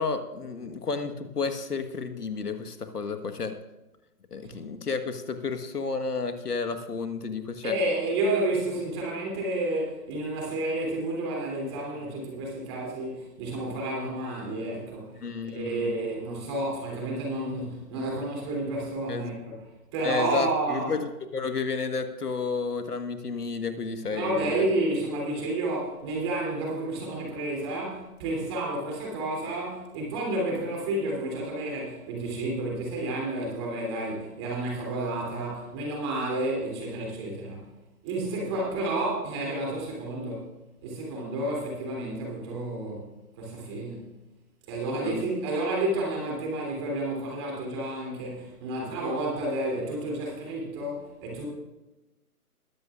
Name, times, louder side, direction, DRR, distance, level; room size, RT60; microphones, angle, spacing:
voice 1, 0.0-3.5 4.3-7.7 15.2-15.9 19.1-19.3 20.0-24.6 45.0-45.2, left 4 dB, 75° left, 8 dB, 1.5 m, -31 dB
voice 2, 7.6-15.1 15.5-19.7 19.9-20.9 24.1-37.7 38.0-43.1 43.4-44.1 44.7-51.5, right 2 dB, 15° right, -2 dB, 3.0 m, -30 dB
21.5 x 11.0 x 2.4 m, 1.0 s
hypercardioid pair, 160°, 46 cm